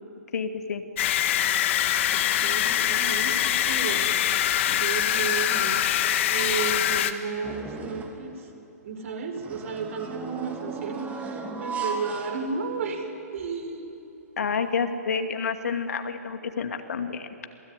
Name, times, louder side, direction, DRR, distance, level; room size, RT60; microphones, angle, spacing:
voice 1, 0.3-0.8 14.4-17.3, left 5 dB, 70° left, 6 dB, 2.4 m, -29 dB
sound 1, 1.0-7.1, left 11 dB, 50° left, 1.6 m, -24 dB
voice 2, 2.1-4.1 4.7-5.8 6.3-8.5 8.8-13.0 13.3-14.0, right 4 dB, 60° right, 5 dB, 5.2 m, -33 dB
sound 2, 7.4-8.3 9.4-13.0 13.4-13.5 14.5-14.6, right 4 dB, 15° right, 2.9 m, -36 dB
27.5 x 20.0 x 9.9 m, 2.8 s
figure-of-eight pair, 125°, 9 cm